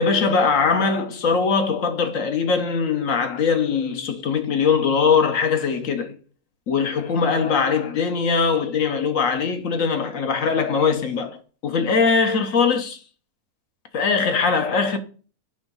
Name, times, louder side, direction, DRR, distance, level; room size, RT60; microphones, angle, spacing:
voice 1, 0.0-6.2 6.7-13.0 13.9-15.0, left 5 dB, 60° left, 1.3 m, -21 dB
7.8 x 3.6 x 5.5 m
omnidirectional pair, 1.6 m